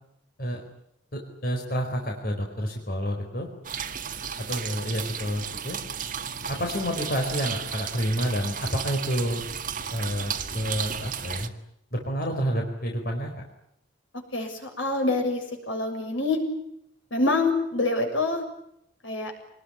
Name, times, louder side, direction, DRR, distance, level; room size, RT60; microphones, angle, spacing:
voice 1, 1.1-3.5 4.4-5.8 6.5-9.4 9.9-11.5 11.9-13.3, equal, 50° left, 1 dB, 4.5 m, -29 dB
sound 1, 3.6-11.5, right 7 dB, 45° right, 1.8 m, -34 dB
voice 2, 14.1-16.4 17.1-18.4 19.0-19.3, left 2 dB, 80° left, 4 dB, 7.3 m, -26 dB
26.5 x 20.5 x 9.9 m, 0.77 s
head